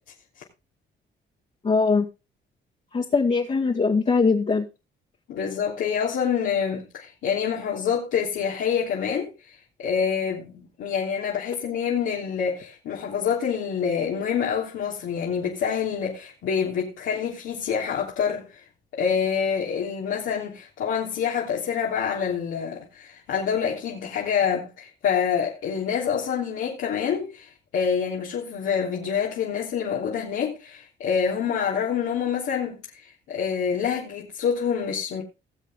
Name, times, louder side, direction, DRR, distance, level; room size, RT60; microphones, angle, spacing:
voice 1, 1.6-2.1 2.9-4.6, left 4 dB, 35° left, 2.1 m, -21 dB
voice 2, 5.3-18.7 18.9-35.2, left 7 dB, 80° left, 3.4 m, -27 dB
19.5 x 7.5 x 3.7 m
cardioid pair, 90°, 20 cm